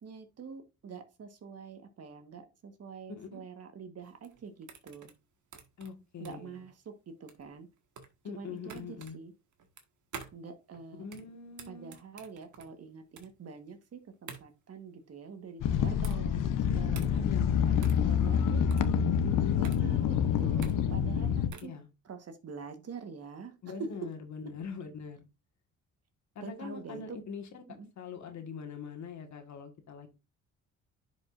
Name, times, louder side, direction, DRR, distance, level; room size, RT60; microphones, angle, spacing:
voice 1, 0.0-5.1 6.2-7.7 8.2-9.3 10.3-11.0 11.7-18.6 19.6-21.7 22.0-24.1 26.4-27.2 27.8-27.9, right 5 dB, 50° right, 1.4 m, -45 dB
voice 2, 3.1-3.4 5.8-6.6 8.2-9.2 11.0-11.9 16.7-17.6 19.2-19.6 21.6-21.9 23.6-25.3 26.3-27.6 28.0-30.1, left 5 dB, 60° left, 1.7 m, -43 dB
sound 1, 4.0-21.8, right 6 dB, 65° right, 1.7 m, -50 dB
sound 2, 15.6-21.5, left 8 dB, 75° left, 0.8 m, -27 dB
10.5 x 5.2 x 2.5 m
cardioid pair, 90°, 32 cm